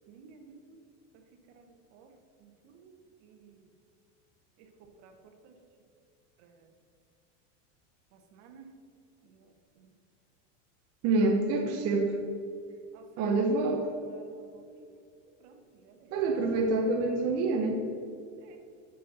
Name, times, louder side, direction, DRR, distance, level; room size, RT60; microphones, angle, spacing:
voice 1, 0.1-0.8 1.5-1.7 1.9-2.1 2.4-3.0 3.2-3.5 5.0-5.5 6.4-6.5 8.3-8.7 12.9-13.3 14.1-14.9 15.4-15.6 15.8-16.1 18.4-18.6, right 5 dB, 65° right, 5 dB, 1.2 m, -55 dB
voice 2, 11.0-12.2 13.2-13.9 16.1-17.8, right 3 dB, 40° right, 2 dB, 0.8 m, -27 dB
6.5 x 5.4 x 6.6 m, 2.3 s
supercardioid pair, 140°, 37 cm